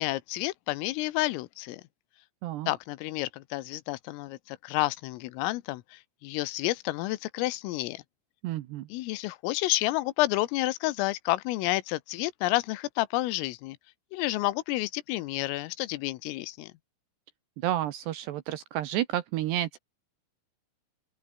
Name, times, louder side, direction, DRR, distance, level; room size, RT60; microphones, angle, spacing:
voice 1, 0.0-1.8 2.7-8.0 8.9-13.8 14.1-16.7, left 18 dB, 85° left, 3.6 m, -30 dB
voice 2, 8.4-8.9 17.6-19.8, right 13 dB, 75° right, 2.6 m, -30 dB
open air
omnidirectional pair, 5.9 m